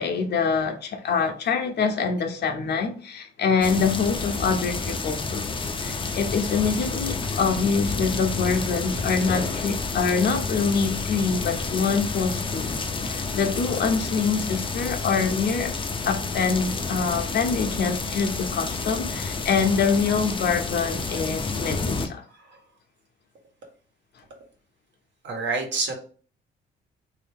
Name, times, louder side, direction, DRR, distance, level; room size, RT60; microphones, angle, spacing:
voice 1, 0.0-12.7 13.0-15.7 16.0-22.2, left 5 dB, 55° left, 0.8 m, -25 dB
sound 1, 3.6-22.1, left 4 dB, 25° left, 0.6 m, -30 dB
voice 2, 25.2-25.9, right 4 dB, 65° right, 1.3 m, -28 dB
3.3 x 2.8 x 3.5 m
cardioid pair, 90°, 20 cm